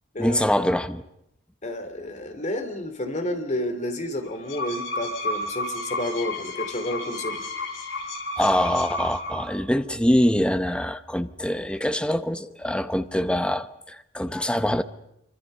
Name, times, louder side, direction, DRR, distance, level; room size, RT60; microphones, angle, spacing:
voice 1, 0.2-1.0 8.4-14.8, equal, 5° left, 0.9 m, -24 dB
voice 2, 1.6-7.4, left 1 dB, 35° left, 2.9 m, -30 dB
sound 1, 4.3-9.6, left 1 dB, 60° left, 4.6 m, -32 dB
26.5 x 24.5 x 5.5 m
head